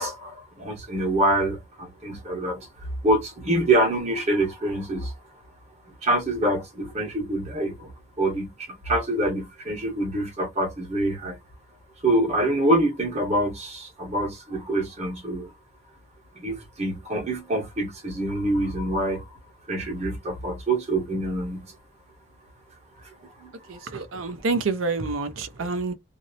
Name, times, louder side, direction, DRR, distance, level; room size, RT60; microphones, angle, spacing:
voice 1, 0.0-5.1 6.0-11.4 12.0-15.5 16.4-19.3 19.7-21.7 23.0-23.5 23.8-23.9, right 1 dB, 30° right, 1.0 m, -26 dB
voice 2, 23.7-25.9, right 3 dB, 70° right, 0.5 m, -28 dB
2.6 x 2.0 x 2.7 m
head